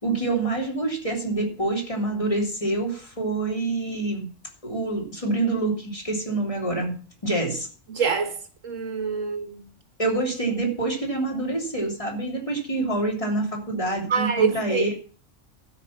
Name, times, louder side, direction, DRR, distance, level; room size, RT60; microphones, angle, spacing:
voice 1, 0.0-4.3 4.6-6.9 7.2-7.7 10.0-15.0, right 2 dB, 25° left, 3.3 m, -26 dB
voice 2, 7.9-8.4 8.6-9.6 14.1-14.9, right 5 dB, 85° right, 1.8 m, -25 dB
12.5 x 5.9 x 8.5 m
omnidirectional pair, 1.3 m